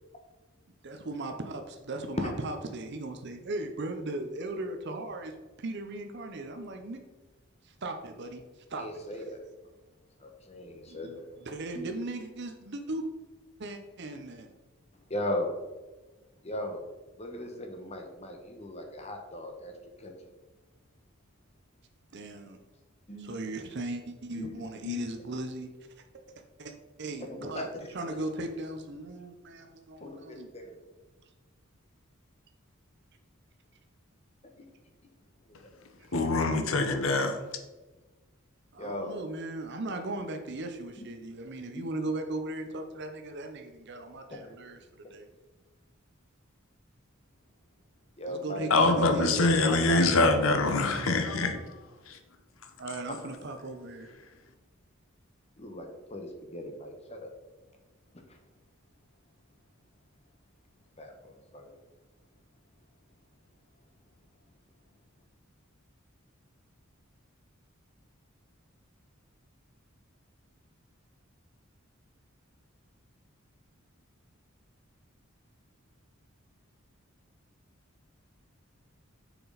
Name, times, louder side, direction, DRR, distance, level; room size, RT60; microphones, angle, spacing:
voice 1, 0.8-5.3 5.6-7.0 7.8-8.4 8.7-8.9 10.9-13.0 13.6-14.5 22.1-22.6 23.2-25.7 26.6-26.7 27.0-27.7 27.9-30.5 37.1-37.4 38.7-44.8 45.1-45.3 48.3-49.8 52.8-54.1, right 2 dB, 55° right, 5 dB, 0.8 m, -37 dB
voice 2, 8.7-9.4 10.2-11.3 11.7-11.9 14.9-15.5 16.4-16.9 17.2-19.7 20.0-20.1 23.1-23.3 24.3-24.5 24.8-25.0 27.2-27.9 30.0-30.2 30.5-30.8 35.5-35.6 38.8-39.2 41.0-41.1 41.7-41.8 44.3-44.6 48.2-50.1 53.1-53.2 55.6-57.3 58.3-58.4 61.0-61.7, left 1 dB, 30° left, 3 dB, 1.1 m, -37 dB
voice 3, 36.1-37.4 48.7-51.8 52.1-52.2, left 2 dB, 75° left, 6 dB, 0.9 m, -24 dB
6.8 x 6.2 x 4.0 m, 1.2 s
head